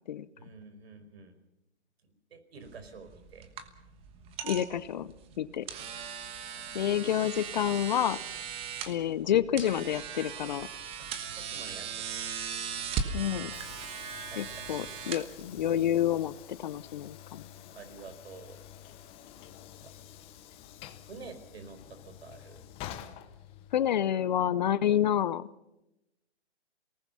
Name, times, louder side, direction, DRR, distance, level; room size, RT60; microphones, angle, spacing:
voice 1, 0.3-1.4 2.0-3.5 6.5-6.7 11.0-12.4 14.3-15.3 17.7-18.7 19.8-19.9 20.9-22.6, right 4 dB, 65° right, 9 dB, 4.9 m, -49 dB
sound 1, 2.6-15.9, right 7 dB, 15° right, 1.3 m, -39 dB
voice 2, 4.4-5.1 5.4-5.6 6.7-8.2 8.9-10.7 13.1-13.5 14.4-17.4 23.7-25.4, left 10 dB, 40° left, 16 dB, 0.7 m, -28 dB
Train / Sliding door, 12.6-24.0, left 11 dB, 15° left, 1.0 m, -49 dB
27.0 x 19.0 x 5.6 m, 0.88 s
hypercardioid pair, 145°, 34 cm